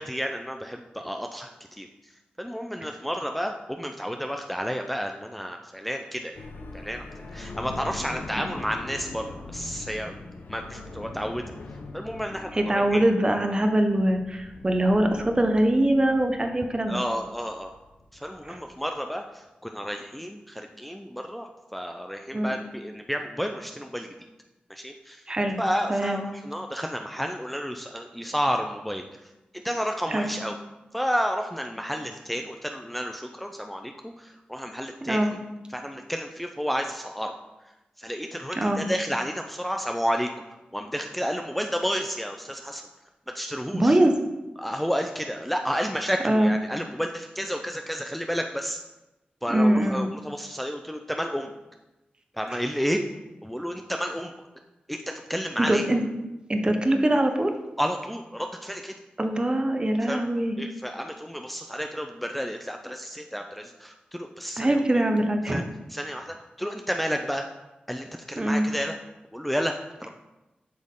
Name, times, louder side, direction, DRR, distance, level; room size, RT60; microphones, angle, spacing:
voice 1, 0.0-2.1 2.4-6.5 6.7-10.1 10.5-11.5 11.9-13.0 16.9-17.7 18.1-24.1 24.7-25.3 25.6-30.6 30.9-35.4 35.7-37.3 38.0-40.3 40.7-42.8 43.3-44.0 44.6-48.8 49.4-51.5 52.3-53.0 53.4-54.3 54.9-55.9 57.8-58.9 60.1-60.2 60.6-64.8 65.5-65.6 65.9-67.5 67.9-68.9 69.3-70.1, equal, 5° left, 4 dB, 0.5 m, -31 dB
sound 1, 6.3-18.8, left 2 dB, 75° left, 0.8 m, -42 dB
voice 2, 12.5-17.0 18.5-18.6 22.3-22.6 25.3-25.6 25.9-26.2 30.1-30.3 35.0-35.3 38.5-38.8 43.7-44.1 46.2-46.5 49.5-50.1 52.5-52.6 55.6-56.1 56.5-57.5 59.2-60.6 64.6-65.6 68.4-68.7, right 1 dB, 25° right, 5 dB, 0.9 m, -23 dB
7.6 x 6.1 x 3.8 m, 1.0 s
wide cardioid pair, 75°, 3 cm